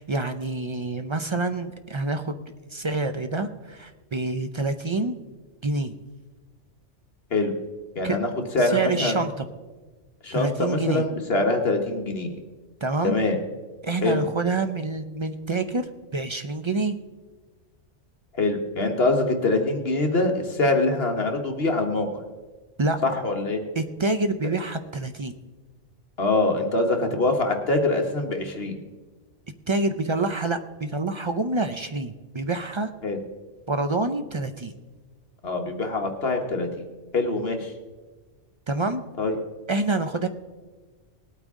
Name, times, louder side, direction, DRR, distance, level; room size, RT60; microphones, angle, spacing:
voice 1, 0.0-2.4 2.7-5.2 5.6-5.9 8.0-8.2 8.7-9.5 10.3-11.0 12.8-13.2 13.8-17.0 22.8-23.0 23.8-25.4 29.7-32.9 33.7-34.7 38.7-39.0 39.7-40.3, right 3 dB, 50° right, 8 dB, 0.3 m, -27 dB
voice 2, 7.9-8.3 8.5-9.2 10.2-12.3 13.0-13.4 14.0-14.2 18.3-22.2 23.0-23.6 26.2-28.8 33.0-33.2 35.4-36.8 37.1-37.7 39.2-39.4, left 2 dB, 55° left, 4 dB, 1.4 m, -24 dB
19.0 x 8.8 x 3.6 m, 1.3 s
omnidirectional pair, 1.3 m